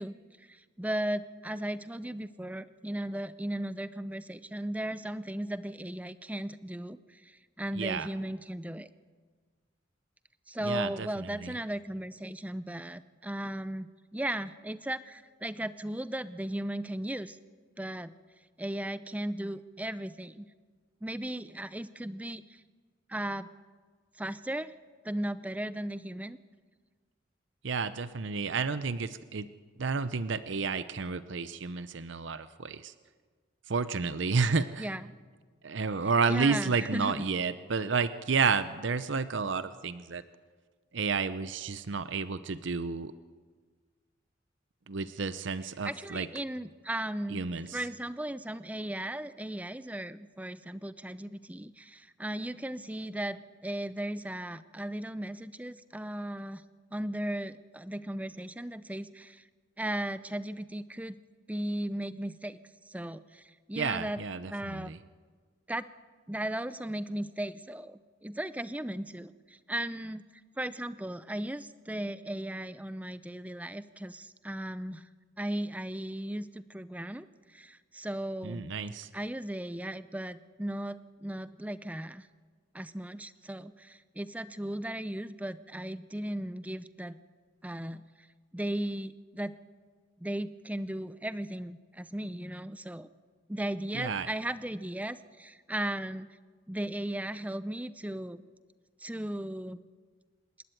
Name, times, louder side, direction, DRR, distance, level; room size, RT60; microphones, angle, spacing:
voice 1, 0.0-8.9 10.5-17.4 17.8-18.1 18.6-20.5 21.0-22.6 23.1-23.5 24.2-24.7 25.0-26.4 34.8-35.1 36.3-37.2 45.8-56.6 56.9-59.4 59.8-61.2 61.5-62.6 62.9-64.2 64.5-64.9 65.7-65.9 66.3-70.2 70.6-75.1 75.4-78.7 79.1-82.3 82.7-87.2 87.6-88.0 88.5-89.6 90.2-93.1 93.5-96.4 96.7-98.4 99.0-99.8, right 1 dB, 5° right, 14 dB, 0.5 m, -36 dB
voice 2, 7.7-8.1 10.6-11.5 27.6-29.5 29.8-32.9 33.7-34.9 35.6-40.2 40.9-43.1 44.9-46.3 47.3-47.8 63.7-65.0 78.4-79.1 93.9-94.3, right 5 dB, 70° right, 13 dB, 0.7 m, -31 dB
27.0 x 12.5 x 9.1 m, 1.5 s
head